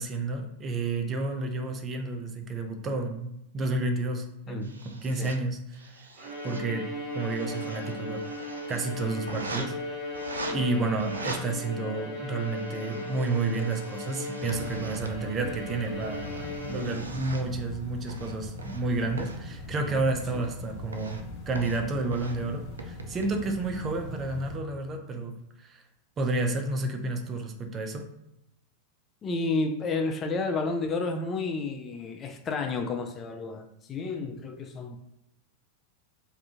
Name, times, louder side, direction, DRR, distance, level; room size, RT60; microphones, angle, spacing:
voice 1, 0.0-4.7 5.0-6.1 6.4-8.3 8.7-10.1 10.5-25.8 26.2-28.1, right 3 dB, 30° right, 5 dB, 0.5 m, -31 dB
sound 1, 4.6-5.4 5.7-6.6 7.0-8.8 9.3-9.7 10.1-10.5 11.0-11.4 12.2-15.1 15.7-17.5 18.1-18.8 19.2-19.4 20.0-20.5 20.9-21.2 21.5-21.8 22.1-22.4 22.8-23.3, right 2 dB, 90° right, 0.4 m, -42 dB
Bowed string instrument, 6.2-17.2, left 1 dB, 55° right, 1.3 m, -37 dB
sound 2, 14.4-24.6, left 2 dB, 50° left, 1.0 m, -41 dB
voice 2, 29.2-35.0, left 3 dB, 30° left, 5 dB, 0.4 m, -31 dB
2.7 x 2.4 x 3.6 m, 0.82 s
hypercardioid pair, 95°, 0 cm